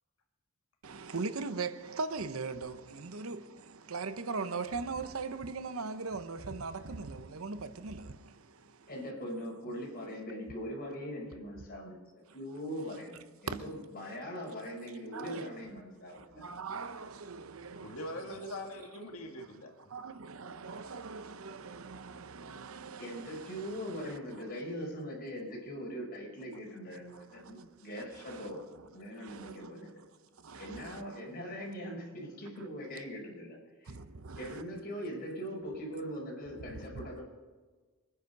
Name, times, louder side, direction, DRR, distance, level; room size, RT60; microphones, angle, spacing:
voice 1, 0.8-8.9 12.7-12.9 13.5-13.6 15.1-15.5 16.1-18.4 19.9-24.2 27.1-28.9 29.2-30.1 30.4-31.2 33.9-34.6 36.7-37.1, right 4 dB, 80° right, 0.9 m, -41 dB
voice 2, 8.9-12.0 12.3-16.4 23.0-28.7 28.9-30.0 30.6-34.0 34.4-37.2, equal, 45° left, 5.1 m, -41 dB
voice 3, 17.8-19.9, left 1 dB, 90° left, 2.0 m, -42 dB
24.0 x 10.0 x 5.3 m
head